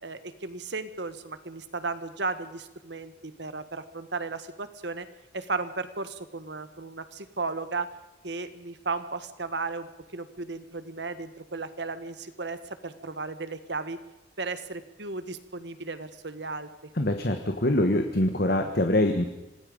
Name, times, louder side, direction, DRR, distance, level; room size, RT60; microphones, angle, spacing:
voice 1, 0.0-5.1 5.3-7.9 8.2-12.6 12.8-14.0 14.4-16.7, right 3 dB, 65° right, 11 dB, 1.6 m, -35 dB
voice 2, 17.0-19.2, left 1 dB, 55° left, 6 dB, 1.5 m, -24 dB
26.5 x 19.0 x 5.4 m, 0.97 s
head